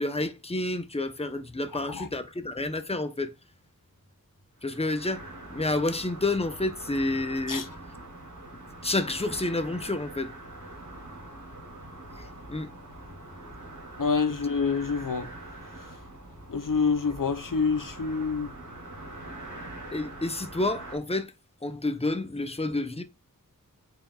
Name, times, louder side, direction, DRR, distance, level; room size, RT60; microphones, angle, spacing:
voice 1, 0.0-3.3 4.6-7.7 8.8-10.3 12.2-12.7 14.3-14.4 19.9-21.3 21.6-23.0, left 2 dB, 15° left, 0.9 m, -29 dB
sound 1, 4.6-21.0, right 1 dB, 55° right, 3.2 m, -43 dB
voice 2, 14.0-15.3 16.5-18.5, left 5 dB, 70° left, 0.8 m, -27 dB
8.7 x 5.1 x 2.4 m
wide cardioid pair, 50°, 34 cm